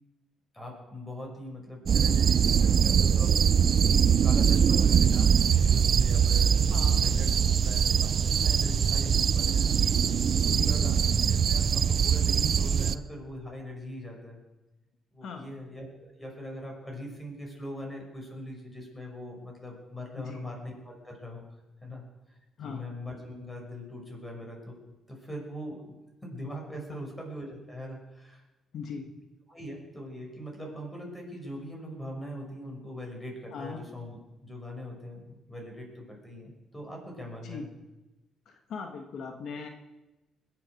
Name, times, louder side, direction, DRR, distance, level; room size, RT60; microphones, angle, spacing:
voice 1, 0.5-9.8 10.1-11.0 11.3-14.4 15.1-22.0 22.3-24.8 25.1-26.0 26.2-28.4 29.5-37.7, equal, 15° left, 0 dB, 5.9 m, -41 dB
sound 1, 1.9-12.9, right 7 dB, 55° right, 0.6 m, -23 dB
voice 2, 6.7-7.0 10.5-10.9 15.2-15.5 20.1-20.4 22.6-22.8 28.7-29.1 33.5-33.8 37.4-37.6 38.4-39.7, left 5 dB, 70° left, 4 dB, 1.5 m, -39 dB
21.0 x 8.6 x 6.5 m, 1.0 s
cardioid pair, 90°, 0 cm